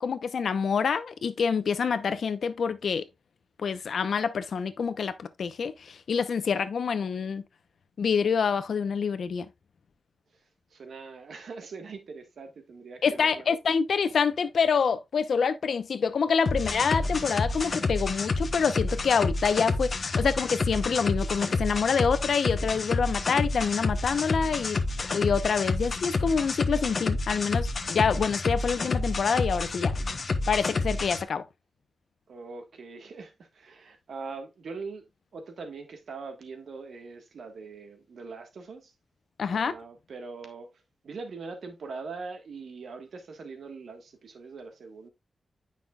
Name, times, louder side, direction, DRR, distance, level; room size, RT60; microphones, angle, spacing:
voice 1, 0.0-3.1 3.6-7.4 8.0-9.5 13.0-24.8 25.1-29.9 30.5-31.4 39.4-39.7, left 6 dB, 80° left, 0.8 m, -26 dB
voice 2, 10.7-13.4 32.3-35.0 35.3-38.9 39.5-45.1, right 4 dB, 85° right, 1.4 m, -42 dB
sound 1, 16.5-31.2, left 3 dB, 50° left, 1.0 m, -29 dB
9.3 x 5.7 x 2.4 m
wide cardioid pair, 105°, 0 cm